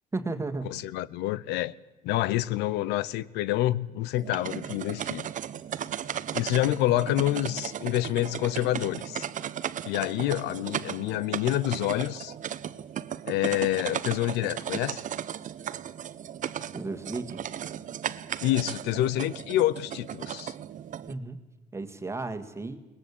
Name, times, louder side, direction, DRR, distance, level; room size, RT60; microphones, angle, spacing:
voice 1, 0.1-0.7 16.7-17.4 21.1-21.4 21.7-22.8, right 3 dB, 15° right, 1.8 m, -34 dB
voice 2, 0.7-1.7 2.0-5.3 6.3-9.3 9.9-12.3 13.3-15.0 18.4-20.5, left 14 dB, 90° left, 0.7 m, -27 dB
sound 1, 4.1-21.1, right 10 dB, 50° right, 0.8 m, -36 dB
21.5 x 20.0 x 8.4 m
cardioid pair, 110°, 17 cm